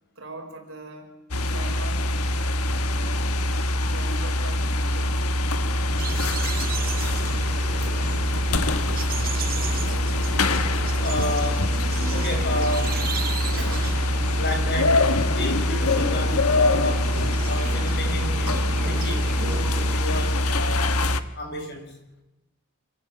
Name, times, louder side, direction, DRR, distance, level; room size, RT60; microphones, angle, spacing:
voice 1, 0.2-1.1 1.5-2.1 2.8-3.3 3.8-5.3 13.6-14.1, right 2 dB, 60° right, 2 dB, 5.7 m, -41 dB
sound 1, 1.3-21.2, left 1 dB, 85° left, 1.3 m, -24 dB
sound 2, 6.0-20.6, right 1 dB, 10° right, 3.2 m, -46 dB
sound 3, 6.0-20.0, right 5 dB, 40° right, 0.8 m, -35 dB
voice 2, 11.0-11.7 12.1-13.1 14.3-17.1 17.5-21.0 21.4-22.0, left 1 dB, 50° left, 5 dB, 5.8 m, -31 dB
27.5 x 14.5 x 7.7 m, 0.93 s
head